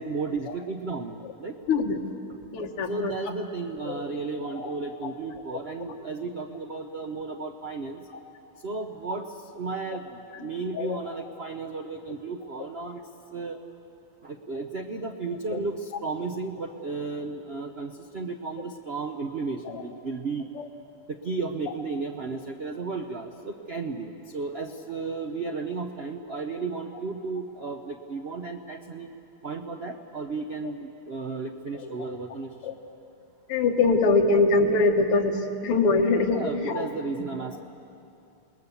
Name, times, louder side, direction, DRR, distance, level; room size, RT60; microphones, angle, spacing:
voice 1, 0.0-1.5 2.9-8.0 8.6-9.3 9.5-10.0 10.4-13.0 13.3-13.6 14.2-20.4 21.2-29.1 29.4-32.5 36.3-37.6, right 4 dB, 80° right, 4 dB, 0.5 m, -34 dB
voice 2, 1.7-2.0 2.5-3.1 3.9-4.1 4.4-4.7 5.0-5.1 5.5-5.6 8.1-8.2 10.7-11.0 15.5-15.6 19.7-19.8 20.6-20.7 27.6-27.7 32.6-32.7 33.5-36.9, left 3 dB, 85° left, 3 dB, 2.4 m, -24 dB
28.0 x 20.0 x 7.1 m, 2.6 s
omnidirectional pair, 2.4 m